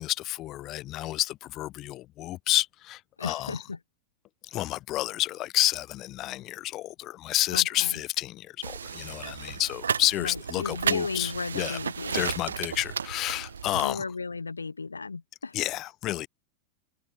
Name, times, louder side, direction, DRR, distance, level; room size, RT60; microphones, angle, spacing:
voice 1, 0.0-3.6 4.4-11.8 12.1-14.0 15.5-16.3, left 16 dB, 35° left, 2.0 m, -30 dB
voice 2, 3.2-3.8 7.5-7.9 10.2-12.3 13.8-15.5, left 4 dB, 80° left, 2.5 m, -34 dB
sound 1, 8.6-13.9, right 6 dB, 70° right, 0.4 m, -33 dB
figure-of-eight pair, 90°, 0 cm